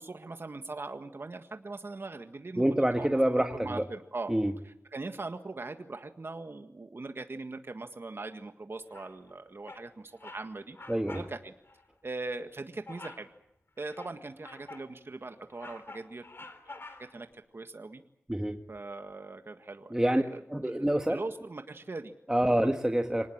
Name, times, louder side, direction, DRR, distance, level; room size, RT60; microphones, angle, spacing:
voice 1, 0.0-4.3 4.7-10.8 11.1-11.5 12.0-13.3 13.8-17.3 17.5-18.0 18.7-22.2, right 3 dB, 55° right, 7 dB, 1.7 m, -41 dB
voice 2, 2.6-3.8 4.3-4.5 10.9-11.2 18.3-18.6 19.9-20.2 20.5-21.2 22.3-23.3, right 1 dB, 15° right, 5 dB, 1.6 m, -26 dB
Bird vocalization bird call bird song, 8.9-9.3 9.7-9.9 10.2-10.5 10.7-11.3 11.6-11.8 12.9-13.3 13.8-14.9 15.3-17.2, left 3 dB, 55° left, 3.6 m, -48 dB
26.0 x 19.0 x 8.8 m, 0.77 s
wide cardioid pair, 60°, 5 cm